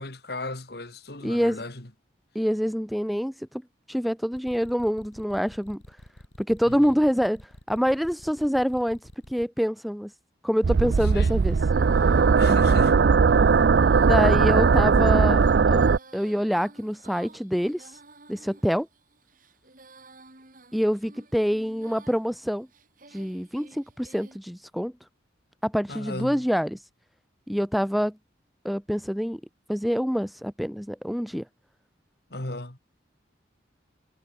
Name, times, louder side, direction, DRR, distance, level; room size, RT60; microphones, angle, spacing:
voice 1, 0.0-1.9 6.6-6.9 11.0-11.4 12.0-13.0 25.9-26.5 32.3-32.8, left 2 dB, 60° left, 2.6 m, -37 dB
voice 2, 1.2-1.6 2.3-3.3 3.9-5.8 6.4-7.4 7.7-9.0 9.3-10.1 10.4-11.6 12.4-12.6 14.0-15.9 16.1-17.9 18.3-18.9 20.7-22.7 23.1-24.9 25.6-26.8 27.5-28.1 28.6-29.4 29.7-31.5, equal, ahead, 0.4 m, -26 dB
sound 1, 4.3-9.4, equal, 85° left, 5.0 m, -48 dB
sound 2, 10.6-16.0, right 5 dB, 65° right, 0.4 m, -19 dB
Female singing, 10.8-24.4, right 3 dB, 50° right, 5.2 m, -52 dB
head